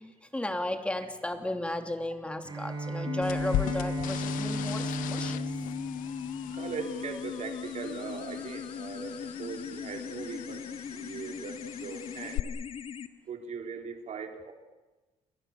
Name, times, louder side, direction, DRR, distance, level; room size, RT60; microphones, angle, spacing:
voice 1, 0.0-5.4, left 1 dB, 10° left, 6 dB, 2.8 m, -34 dB
Bowed string instrument, 2.4-7.2, right 2 dB, 35° right, 4.3 m, -36 dB
sound 1, 3.1-13.1, left 7 dB, 45° left, 1.9 m, -38 dB
sound 2, 3.2-12.4, left 15 dB, 85° left, 0.8 m, -39 dB
voice 2, 6.5-12.5 13.3-14.5, right 5 dB, 55° right, 4 dB, 3.7 m, -40 dB
30.0 x 23.5 x 7.2 m, 1.2 s
cardioid pair, 105°, 14 cm